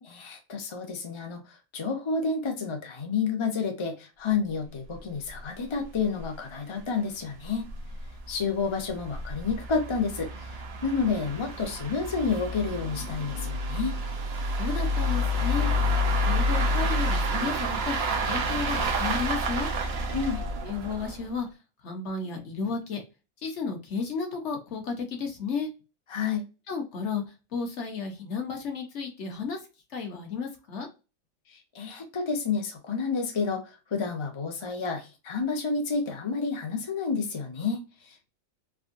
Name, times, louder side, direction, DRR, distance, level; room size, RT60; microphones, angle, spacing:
voice 1, 0.0-7.7 8.3-14.0 20.1-20.4 26.1-26.4 31.5-38.3, left 5 dB, 35° left, 0.5 m, -30 dB
sound 1, 4.9-5.0 5.3-5.4 5.8-5.9 6.2-6.3 7.0-21.3, equal, 55° right, 0.8 m, -29 dB
voice 2, 14.6-15.7 16.3-18.0 18.3-19.7 20.6-21.5 21.8-23.0 23.4-25.7 26.7-27.2 27.5-29.6 29.9-30.9, left 5 dB, 60° left, 1.1 m, -33 dB
3.6 x 2.1 x 2.5 m
omnidirectional pair, 1.5 m